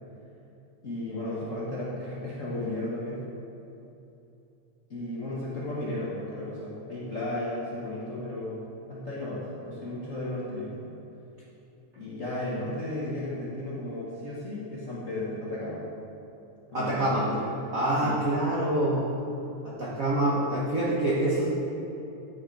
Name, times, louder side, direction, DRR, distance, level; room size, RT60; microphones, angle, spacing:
voice 1, 0.8-3.3 4.9-8.6 8.9-10.8 11.9-15.8 16.7-17.7 18.0-18.2, left 1 dB, 40° left, -8 dB, 1.2 m, -34 dB
voice 2, 16.7-17.3 17.7-19.1 19.6-21.5, right 1 dB, 80° right, -6 dB, 0.7 m, -26 dB
11.0 x 6.6 x 4.7 m, 2.9 s
omnidirectional pair, 3.4 m